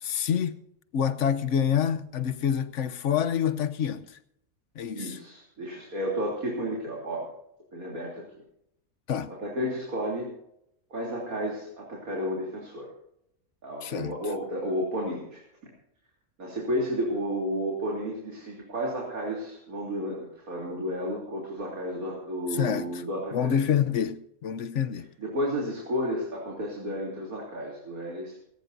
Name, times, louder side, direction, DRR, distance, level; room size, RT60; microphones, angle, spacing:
voice 1, 0.0-0.6 0.9-4.2 4.7-5.2 9.1-9.3 13.8-14.2 22.5-23.0 23.3-25.1, left 8 dB, 60° left, 1.1 m, -27 dB
voice 2, 4.9-7.3 7.7-8.3 9.3-10.3 10.9-12.9 13.6-15.4 16.4-23.6 25.2-28.3, equal, 75° right, 3.8 m, -32 dB
19.5 x 18.0 x 2.7 m
omnidirectional pair, 1.5 m